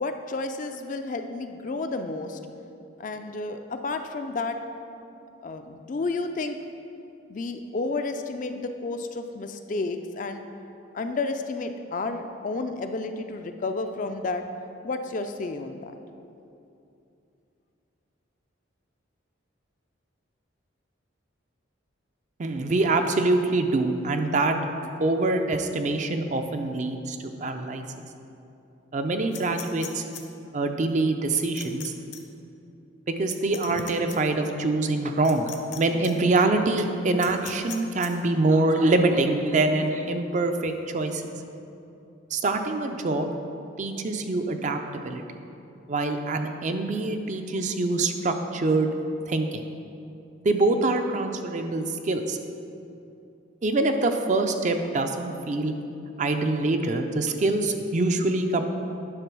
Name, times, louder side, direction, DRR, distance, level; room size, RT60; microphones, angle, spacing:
voice 1, 0.0-2.4 3.0-4.6 5.4-6.6 7.3-10.4 10.9-14.4 14.8-15.9, left 3 dB, 40° left, 7 dB, 0.4 m, -31 dB
voice 2, 22.4-24.6 25.0-27.8 28.9-30.0 30.5-31.9 33.1-41.3 42.3-43.3 43.8-45.2 45.9-48.9 49.3-49.6 50.4-52.4 53.6-55.7 56.2-58.6, right 2 dB, 35° right, 6 dB, 0.4 m, -25 dB
sound 1, 29.3-30.2 31.3-31.9 32.1-32.2 33.3-34.2 35.2-35.8 36.0-36.1 37.2-38.1, left 11 dB, 60° left, 0.7 m, -39 dB
10.0 x 3.8 x 6.0 m, 2.7 s
head